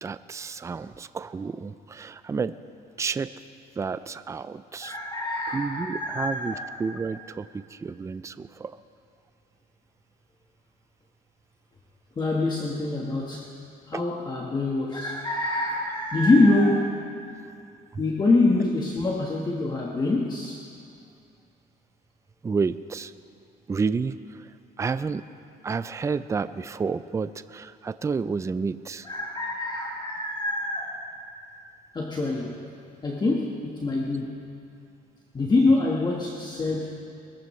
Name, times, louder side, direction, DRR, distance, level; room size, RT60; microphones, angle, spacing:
voice 1, 0.0-2.5 3.0-3.3 3.8-5.0 5.5-8.8 13.9-14.0 22.4-23.1 23.7-24.5 24.8-25.2 25.6-29.1, right 5 dB, 15° right, 13 dB, 0.4 m, -30 dB
voice 2, 4.8-6.7 12.2-13.5 13.9-17.0 18.0-20.7 29.0-31.1 31.9-32.6 33.0-34.4 35.3-37.0, left 2 dB, 25° left, -2 dB, 1.4 m, -25 dB
22.5 x 15.0 x 3.2 m, 2.5 s
cardioid pair, 110°, 17 cm